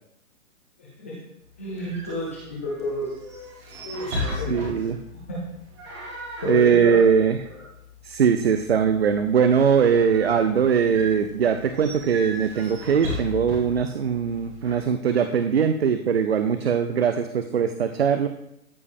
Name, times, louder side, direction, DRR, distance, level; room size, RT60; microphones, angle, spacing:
voice 1, 0.8-1.1 1.6-3.1 3.8-4.9 5.3-5.4 6.4-7.0 7.5-7.6, left 1 dB, 10° left, -6 dB, 0.6 m, -30 dB
swinging door in tight space +light electric hum, 1.4-14.8, left 1 dB, 20° right, 1.2 m, -37 dB
voice 2, 4.5-5.0 6.5-7.4 8.0-18.3, right 7 dB, 45° right, 8 dB, 0.4 m, -21 dB
13.5 x 4.6 x 3.5 m, 0.80 s
hypercardioid pair, 165°, 44 cm